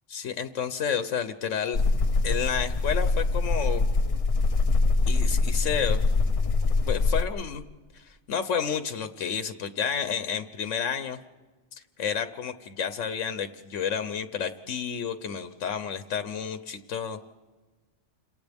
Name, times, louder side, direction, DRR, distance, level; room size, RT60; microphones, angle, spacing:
voice 1, 0.1-1.8 2.2-3.9 5.1-6.0 6.9-7.6 7.9-11.2 11.8-17.2, left 7 dB, 90° left, 9 dB, 1.2 m, -30 dB
sound 1, 1.7-7.3, left 3 dB, 35° left, 0.7 m, -24 dB
29.5 x 27.0 x 3.5 m, 1.3 s
omnidirectional pair, 1.2 m